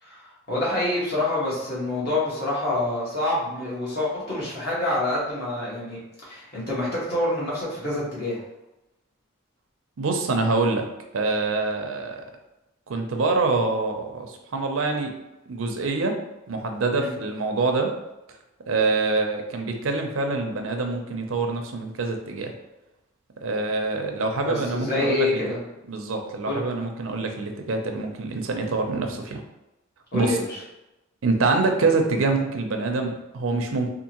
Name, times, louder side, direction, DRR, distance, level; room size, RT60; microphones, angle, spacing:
voice 1, 0.0-8.4 16.9-17.1 24.4-25.6 26.4-26.7 30.1-30.6, left 2 dB, 50° left, -6 dB, 1.3 m, -27 dB
voice 2, 10.0-10.9 11.1-12.2 12.9-15.1 15.5-16.2 16.5-17.9 18.7-22.5 23.4-25.5 25.9-29.4 30.1-30.4 31.2-33.9, right 3 dB, 85° right, 4 dB, 0.5 m, -25 dB
3.6 x 2.5 x 2.9 m, 0.95 s
head